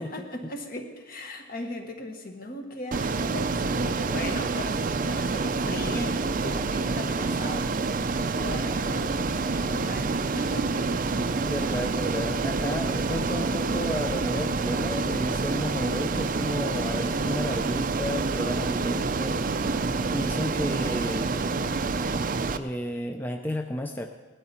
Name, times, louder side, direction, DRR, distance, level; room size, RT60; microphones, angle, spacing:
voice 1, 0.0-7.7 8.4-10.9 11.5-11.9, left 1 dB, 50° left, 4 dB, 1.5 m, -38 dB
Ocean, 2.9-22.6, right 3 dB, 45° right, 0.5 m, -27 dB
voice 2, 11.4-19.4 20.1-21.4 22.5-24.1, left 1 dB, 10° left, 4 dB, 0.5 m, -32 dB
19.0 x 12.5 x 4.4 m, 1.4 s
head